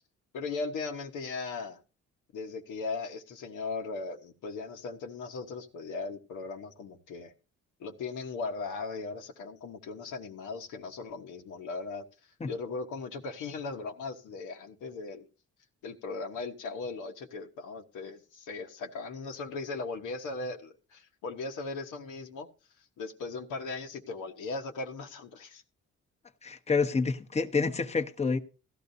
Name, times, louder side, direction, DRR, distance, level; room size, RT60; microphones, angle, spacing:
voice 1, 0.3-1.8 2.3-7.3 7.8-12.0 12.5-15.3 15.8-22.5 23.0-25.6, left 4 dB, 85° left, 1.3 m, -38 dB
voice 2, 26.4-28.4, left 4 dB, 20° left, 1.0 m, -28 dB
16.5 x 12.0 x 2.7 m
cardioid pair, 90°, 30 cm